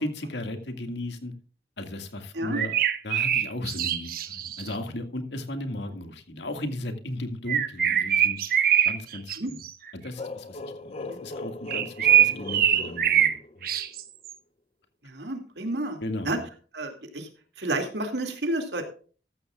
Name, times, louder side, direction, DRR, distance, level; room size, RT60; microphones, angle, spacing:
voice 1, 0.0-1.3 1.8-2.8 3.0-8.4 8.8-9.6 9.9-13.7 16.0-16.4, left 1 dB, 80° left, 6 dB, 2.1 m, -35 dB
sound 1, 2.5-4.7 7.5-9.4 9.6-9.9 11.7-13.4 13.6-14.3, right 10 dB, 55° right, 1.1 m, -23 dB
sound 2, 10.2-13.9, left 2 dB, 35° left, 0.6 m, -39 dB
voice 2, 15.0-16.0 16.2-16.4 16.7-17.3 17.6-18.8, right 2 dB, 80° right, 5 dB, 2.4 m, -30 dB
14.0 x 13.5 x 2.4 m, 0.39 s
head